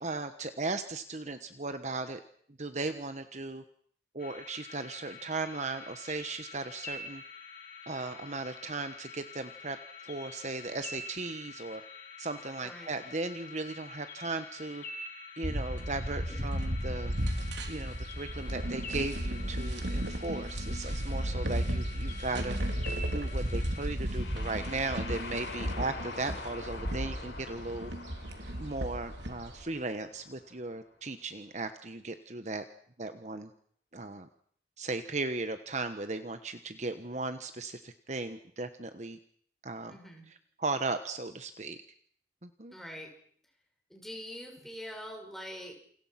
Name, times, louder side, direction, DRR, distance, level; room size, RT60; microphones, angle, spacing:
voice 1, 0.0-2.2 2.6-3.6 4.1-7.2 7.9-9.8 10.0-11.8 12.2-14.8 15.4-17.1 17.7-22.6 23.1-27.9 28.6-32.6 33.0-33.5 33.9-34.3 34.8-39.2 39.6-40.0 40.3-41.8 42.4-42.7, right 3 dB, 40° right, 9 dB, 1.3 m, -37 dB
sound 1, 4.2-24.0, left 3 dB, 50° left, 3.2 m, -47 dB
sound 2, 15.4-29.6, equal, 90° right, 3.5 m, -34 dB
slow ghosts, 18.3-21.2 23.9-30.8, left 3 dB, 85° left, 7.1 m, -46 dB
voice 2, 39.9-40.2 42.7-43.1 43.9-45.7, equal, ahead, 1 dB, 6.4 m, -44 dB
29.0 x 28.0 x 6.0 m, 0.62 s
head